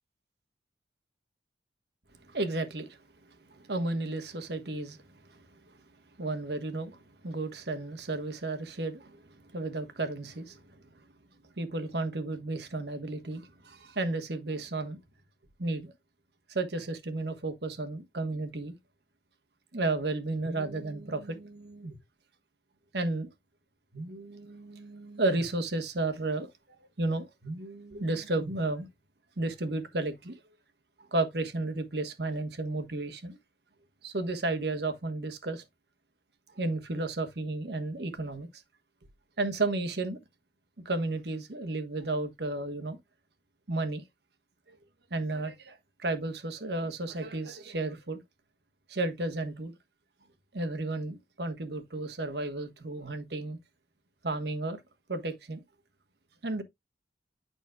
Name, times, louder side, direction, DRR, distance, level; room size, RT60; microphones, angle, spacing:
voice 1, 2.3-3.0 3.5-5.0 6.2-7.0 7.2-10.6 11.6-15.0 15.6-15.9 16.5-18.7 19.7-22.0 22.9-23.3 23.9-26.5 27.0-28.9 29.4-30.4 31.1-33.4 34.0-35.6 36.6-38.5 39.4-40.2 40.8-43.0 43.7-44.0 44.7-44.8 45.1-48.2 48.9-49.7 50.5-53.6 54.2-54.8 55.1-55.6 56.4-56.6, right 2 dB, 65° right, 1.3 m, -33 dB
9.1 x 6.1 x 2.3 m
head